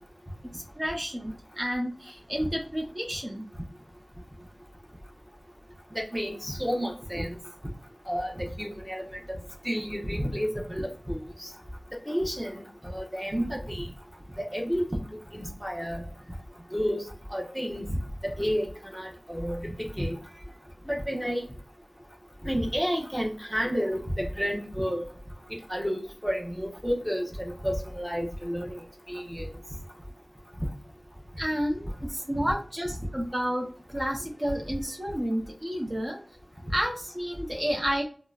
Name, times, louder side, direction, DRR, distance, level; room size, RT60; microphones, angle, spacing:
voice 1, 0.5-3.4 31.4-36.2 36.7-38.0, equal, 30° right, 0 dB, 0.7 m, -31 dB
voice 2, 5.9-7.4 8.1-9.0 9.3-9.4 9.6-11.5 12.1-13.9 14.5-15.0 15.3-16.0 16.7-17.1 17.3-17.9 18.4-20.2 20.9-21.4 22.4-25.0 25.5-28.8 29.1-29.5 32.4-32.5, equal, ahead, 0 dB, 0.8 m, -31 dB
3.7 x 2.0 x 2.3 m, 0.40 s
wide cardioid pair, 55°, 0 cm